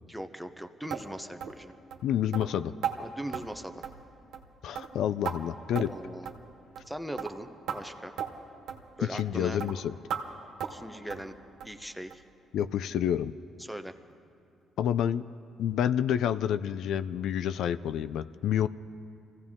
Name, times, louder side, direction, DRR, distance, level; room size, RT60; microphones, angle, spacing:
voice 1, 0.1-1.7 3.0-3.9 5.9-6.3 6.9-8.1 9.0-9.6 10.7-11.4 11.6-12.2 13.6-13.9, right 1 dB, ahead, 8 dB, 0.8 m, -40 dB
sound 1, 0.9-1.1 1.4-1.6 1.9-2.0 2.3-2.5 2.8-3.0 3.3-3.5 3.8-4.1 4.3-4.5 4.8-5.4 5.8-6.0 6.3-6.4 6.8-6.9 7.2-7.3 7.7-7.8 8.2-8.3 8.7-8.8 9.2-9.3 9.6-9.7 10.1-10.2 10.6-10.8 11.1-11.3 11.6-11.8 12.1-12.2 12.6-12.7 13.1-13.2, right 8 dB, 85° right, 1.2 m, -35 dB
voice 2, 2.0-2.7 4.6-5.9 9.1-9.9 12.5-13.3 14.8-15.2 15.6-18.7, left 10 dB, 80° left, 14 dB, 0.3 m, -28 dB
24.0 x 16.0 x 3.7 m, 2.5 s
cardioid pair, 90°, 0 cm